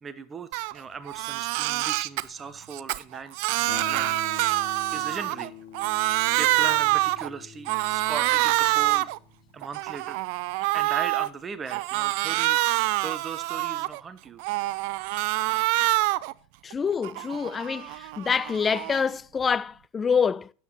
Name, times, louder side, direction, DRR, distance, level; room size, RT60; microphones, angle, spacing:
voice 1, 0.0-4.2 4.9-5.5 6.0-9.1 9.5-10.2 10.7-14.4, right 5 dB, 20° right, 1.0 m, -38 dB
Crying sobbing, 0.5-0.7 1.1-2.2 2.7-5.5 5.7-7.3 7.7-9.2 9.6-11.3 11.7-14.0 14.4-16.3 16.7-19.1, right 19 dB, 55° right, 0.4 m, -26 dB
Guitar, 3.7-10.4, left 9 dB, 60° left, 1.7 m, -45 dB
voice 2, 16.6-20.5, left 6 dB, 20° left, 0.4 m, -26 dB
12.5 x 8.4 x 3.0 m
figure-of-eight pair, 80°, 0 cm